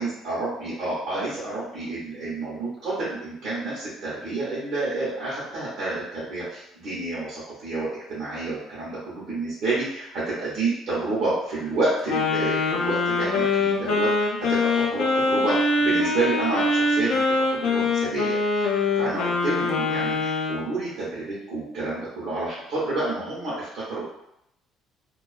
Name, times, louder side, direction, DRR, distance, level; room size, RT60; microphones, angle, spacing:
voice 1, 0.0-17.2 17.5-24.1, right 2 dB, 60° right, -9 dB, 0.8 m, -29 dB
Wind instrument woodwind instrument, 12.1-20.7, left 3 dB, 70° left, 0.5 m, -23 dB
2.3 x 2.2 x 2.4 m, 0.79 s
cardioid pair, 170°, 0 cm